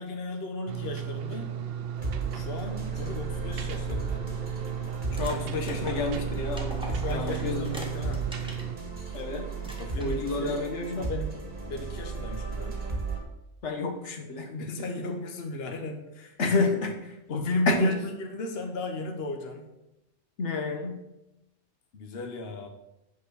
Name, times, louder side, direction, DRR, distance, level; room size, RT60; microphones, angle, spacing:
voice 1, 0.0-1.5 2.3-4.2 6.9-8.2 9.8-11.4 11.7-12.8 14.5-16.7 17.3-19.7 21.9-22.7, left 2 dB, 60° left, 4 dB, 1.3 m, -35 dB
sound 1, 0.7-8.8, right 9 dB, 60° right, 0.8 m, -35 dB
sound 2, 2.0-13.2, right 3 dB, 45° right, 1.9 m, -35 dB
voice 2, 5.1-6.7 7.1-7.7 9.1-9.5 10.0-11.1 13.6-14.5 16.4-16.9 17.7-17.9 20.4-21.0, left 3 dB, 85° left, 3 dB, 1.5 m, -29 dB
sound 3, 5.1-8.7 9.1-9.2 9.6-10.4, equal, 5° right, 1.8 m, -42 dB
9.0 x 5.0 x 6.4 m, 0.90 s
omnidirectional pair, 1.2 m